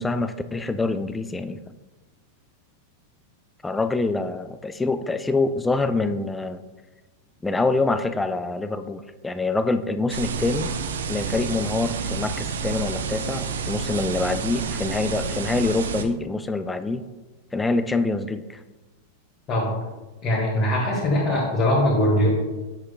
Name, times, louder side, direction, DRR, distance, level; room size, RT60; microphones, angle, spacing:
voice 1, 0.0-1.6 3.6-6.6 7.4-10.7 11.1-17.0 17.5-18.6, left 3 dB, 10° left, 11 dB, 0.4 m, -25 dB
sound 1, 10.1-16.0, right 5 dB, 65° right, 0.5 m, -29 dB
voice 2, 20.2-22.3, left 1 dB, 30° left, -5 dB, 1.6 m, -21 dB
7.8 x 6.4 x 2.2 m, 1.2 s
figure-of-eight pair, 90°, 0 cm